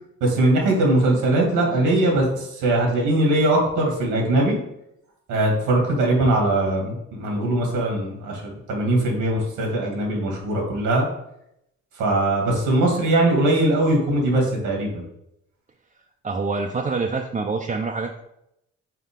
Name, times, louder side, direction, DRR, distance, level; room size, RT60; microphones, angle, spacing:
voice 1, 0.2-4.6 5.3-11.1 12.0-15.0, right 1 dB, 90° right, 0 dB, 1.9 m, -21 dB
voice 2, 16.2-18.2, right 4 dB, 25° right, 1 dB, 0.5 m, -26 dB
5.7 x 4.5 x 3.6 m, 0.80 s
cardioid pair, 90°, 30 cm